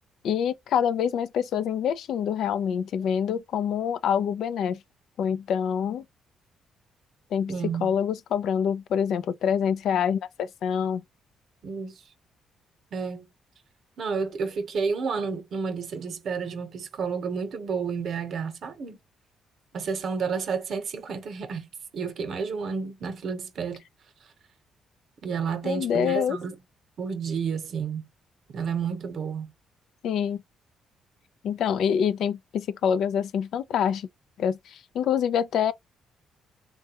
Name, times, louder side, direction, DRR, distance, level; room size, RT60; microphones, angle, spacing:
voice 1, 0.2-4.8 5.2-6.0 7.3-7.5 7.8-11.0 25.6-26.4 30.0-30.4 31.4-34.1 34.4-35.7, left 8 dB, 75° left, 0.4 m, -26 dB
voice 2, 7.5-7.9 11.6-11.9 12.9-13.3 14.0-19.0 19.7-21.7 21.9-23.8 25.2-26.6 27.0-28.0 28.5-29.5, right 5 dB, 60° right, 0.9 m, -30 dB
3.4 x 2.2 x 2.8 m
cardioid pair, 90°, 0 cm